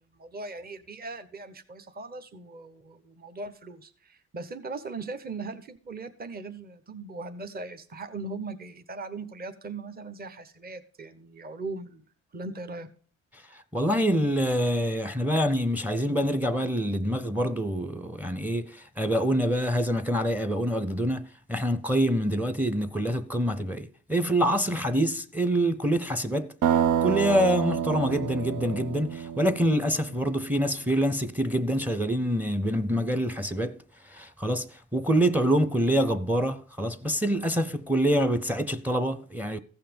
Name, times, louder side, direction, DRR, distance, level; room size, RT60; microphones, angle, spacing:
voice 1, 0.1-12.0 12.3-12.9, right 3 dB, 30° right, 1.0 m, -39 dB
voice 2, 13.5-39.6, equal, 5° right, 0.7 m, -26 dB
sound 1, 26.6-30.4, right 9 dB, 85° right, 0.7 m, -28 dB
15.0 x 5.8 x 5.2 m
cardioid pair, 90°, 30 cm